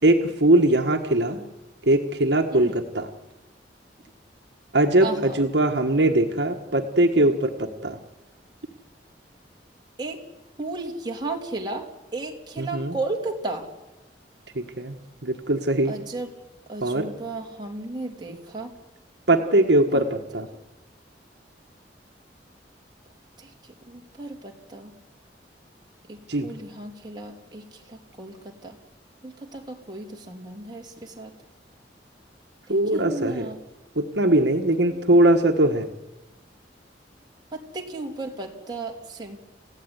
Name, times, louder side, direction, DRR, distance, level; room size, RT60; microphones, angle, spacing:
voice 1, 0.0-1.4 1.8-3.1 4.7-8.0 12.6-13.0 14.5-16.0 16.8-17.1 19.3-20.5 26.3-26.5 32.7-33.5 33.9-35.9, right 1 dB, 65° right, 4 dB, 1.6 m, -21 dB
voice 2, 5.0-5.4 10.0-10.2 10.6-11.9 12.1-13.6 15.9-16.3 16.7-18.7 23.4-23.5 23.9-24.9 26.1-28.7 29.2-31.3 32.7-33.6 37.5-39.4, right 2 dB, 25° right, 0 dB, 3.3 m, -34 dB
29.0 x 16.0 x 9.8 m, 1.1 s
head